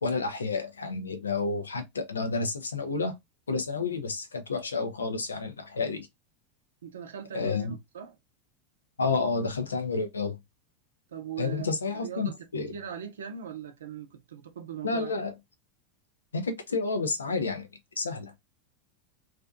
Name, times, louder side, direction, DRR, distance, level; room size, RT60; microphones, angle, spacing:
voice 1, 0.0-3.1 3.5-6.1 7.3-7.7 9.0-10.4 11.4-12.7 14.8-15.3 16.3-17.7 18.0-18.3, left 4 dB, 90° left, 0.5 m, -30 dB
voice 2, 6.8-8.2 11.1-11.7 11.9-12.4 12.7-15.1, right 8 dB, 80° right, 0.5 m, -40 dB
2.5 x 2.2 x 2.5 m
hypercardioid pair, 90°, 0 cm